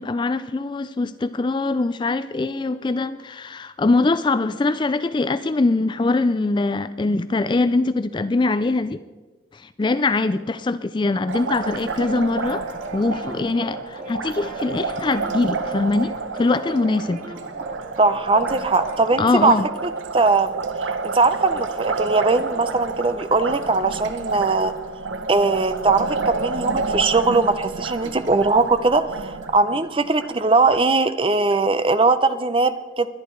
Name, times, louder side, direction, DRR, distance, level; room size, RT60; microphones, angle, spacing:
voice 1, 0.0-9.0 9.5-12.6 12.9-17.2 19.2-19.7, left 3 dB, 25° left, 13 dB, 0.3 m, -22 dB
Liquid, 11.3-30.8, right 4 dB, 80° right, 0.8 m, -30 dB
sound 1, 11.6-19.6, right 2 dB, 45° right, 1.9 m, -37 dB
voice 2, 18.0-19.6 19.8-20.5 20.8-24.7 25.3-33.1, right 3 dB, 25° right, 12 dB, 0.6 m, -20 dB
21.0 x 10.0 x 4.5 m, 1.2 s
head